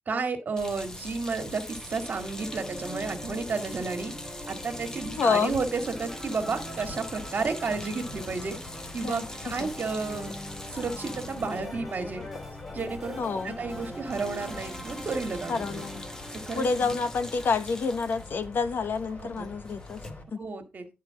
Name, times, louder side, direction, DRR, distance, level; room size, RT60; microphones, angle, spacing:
voice 1, 0.1-4.1 4.5-8.6 8.9-10.3 10.7-12.2 12.7-15.8 16.3-17.0 19.2-19.5 20.3-20.9, right 4 dB, 50° right, 2.1 m, -32 dB
sound 1, 0.6-20.2, left 3 dB, 50° left, 3.1 m, -45 dB
sound 2, 0.6-12.9 13.2-13.4 13.7-20.1, left 1 dB, 15° left, 1.0 m, -44 dB
sound 3, 1.7-19.1, equal, ahead, 1.5 m, -43 dB
voice 2, 5.1-5.5 9.0-9.2 9.6-9.7 13.2-13.6 15.5-16.1 16.5-20.0 20.3-20.4, left 5 dB, 65° left, 1.0 m, -28 dB
11.5 x 4.7 x 4.7 m
wide cardioid pair, 155°, 4 cm